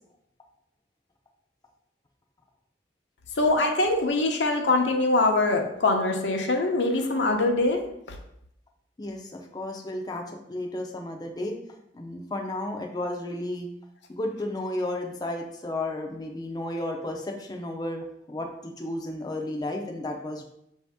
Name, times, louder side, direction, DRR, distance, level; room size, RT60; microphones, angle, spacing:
voice 1, 3.4-7.8, left 2 dB, 80° left, 2 dB, 0.7 m, -23 dB
voice 2, 9.0-11.6 11.9-13.7 14.1-20.4, left 1 dB, 20° left, 2 dB, 0.5 m, -33 dB
5.5 x 2.7 x 3.5 m, 0.75 s
head